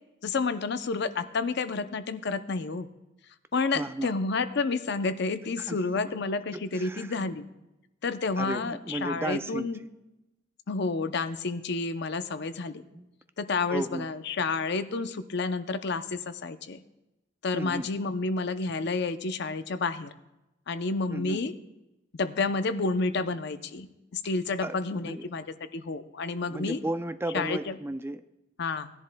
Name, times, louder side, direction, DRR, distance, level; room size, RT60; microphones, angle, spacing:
voice 1, 0.2-2.9 3.5-7.5 8.0-9.8 10.7-12.8 13.4-16.8 17.4-20.1 20.7-21.5 22.1-23.9 24.1-25.4 25.7-26.8 27.3-27.6 28.6-28.9, left 3 dB, 60° left, 10 dB, 0.6 m, -30 dB
voice 2, 3.7-4.1 5.6-6.1 6.5-7.3 8.4-9.7 12.9-13.1 13.7-14.1 17.5-17.9 21.1-21.4 24.6-25.3 26.4-28.2, right 1 dB, 15° right, 10 dB, 0.4 m, -34 dB
18.5 x 10.5 x 2.2 m, 0.97 s
head